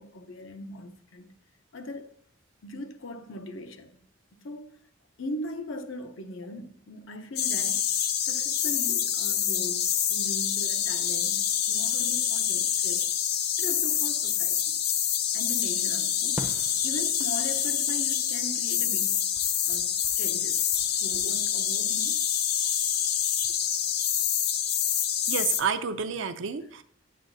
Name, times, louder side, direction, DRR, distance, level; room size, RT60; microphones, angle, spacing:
voice 1, 0.0-1.4 1.7-2.1 2.6-4.0 4.3-4.8 5.2-13.1 13.6-14.8 15.3-16.4 16.8-19.4 19.7-22.2, left 1 dB, 75° left, 0.8 m, -40 dB
sound 1, 7.4-25.6, left 9 dB, 50° left, 0.5 m, -27 dB
Fireworks, 16.4-19.0 19.3-21.3, right 1 dB, 5° right, 0.5 m, -45 dB
voice 2, 25.3-26.8, right 6 dB, 70° right, 0.5 m, -29 dB
9.8 x 7.6 x 2.7 m
head